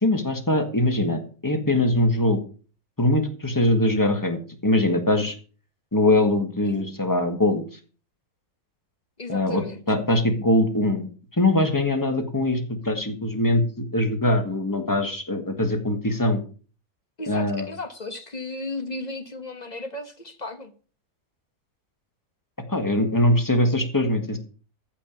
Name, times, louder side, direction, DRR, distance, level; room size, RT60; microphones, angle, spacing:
voice 1, 0.0-2.4 3.0-5.3 5.9-7.6 9.3-11.1 11.3-16.4 17.3-17.7 22.7-24.4, left 1 dB, 15° left, 1.7 m, -22 dB
voice 2, 9.2-9.8 17.2-20.7, left 2 dB, 30° left, 1.4 m, -35 dB
14.5 x 6.0 x 6.9 m
omnidirectional pair, 1.6 m